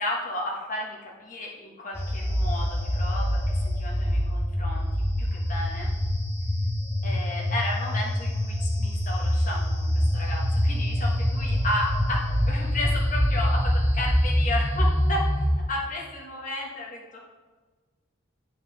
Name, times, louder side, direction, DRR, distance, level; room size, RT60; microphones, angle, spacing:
voice 1, 0.0-4.9 5.2-5.9 7.0-17.2, left 1 dB, 40° left, -2 dB, 1.4 m, -33 dB
sound 1, 1.9-15.5, equal, 15° left, 1.1 m, -25 dB
9.5 x 4.9 x 3.3 m, 1.4 s
head